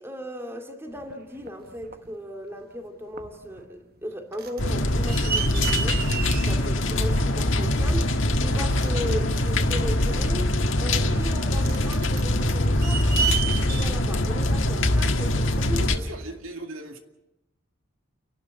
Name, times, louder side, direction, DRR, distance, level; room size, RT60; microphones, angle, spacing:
voice 1, 0.0-6.2 6.5-10.5 10.8-15.9, equal, 10° right, 2.4 m, -37 dB
sound 1, 1.0-2.1 2.7-2.9 3.1-3.7 4.0-15.4 16.2-16.3, right 7 dB, 45° right, 1.2 m, -33 dB
sound 2, 4.6-16.0, left 1 dB, 60° left, 1.8 m, -23 dB
voice 2, 15.7-17.0, right 1 dB, 75° right, 2.3 m, -37 dB
30.0 x 12.5 x 8.2 m
head